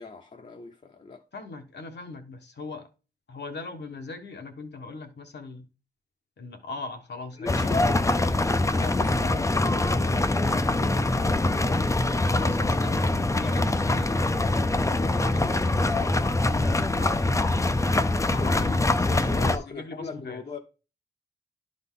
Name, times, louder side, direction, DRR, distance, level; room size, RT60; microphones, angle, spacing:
voice 1, 0.0-1.2 7.4-8.2 8.7-11.1 11.5-12.0 19.0-20.6, left 4 dB, 45° left, 0.8 m, -38 dB
voice 2, 1.3-2.9 3.3-5.7 6.4-8.3 12.3-14.3 14.9-17.6 18.3-20.4, left 3 dB, 80° left, 1.3 m, -40 dB
sound 1, 7.5-19.6, left 2 dB, 20° left, 0.5 m, -24 dB
11.5 x 4.0 x 3.8 m
wide cardioid pair, 130°, 17 cm